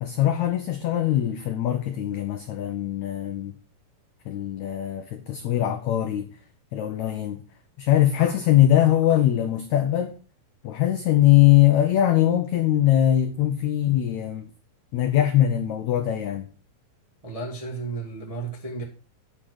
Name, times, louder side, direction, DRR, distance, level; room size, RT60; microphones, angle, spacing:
voice 1, 0.0-3.5 4.2-6.3 6.7-7.4 7.8-10.1 10.6-14.5 14.9-16.5, left 12 dB, 80° left, 1.6 m, -21 dB
voice 2, 17.2-18.8, right 3 dB, 25° right, 0.7 m, -33 dB
10.0 x 5.0 x 6.1 m
omnidirectional pair, 4.2 m